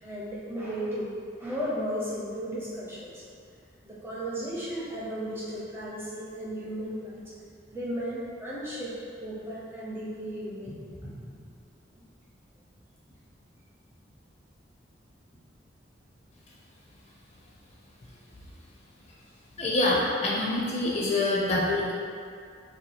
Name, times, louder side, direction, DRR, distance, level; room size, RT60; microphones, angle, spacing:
voice 1, 0.0-3.2 3.8-7.2 7.7-11.4 21.5-21.6, equal, 10° right, -7 dB, 0.6 m, -35 dB
voice 2, 19.6-21.9, left 2 dB, 35° left, -5 dB, 0.4 m, -26 dB
2.7 x 2.5 x 4.0 m, 2.3 s
head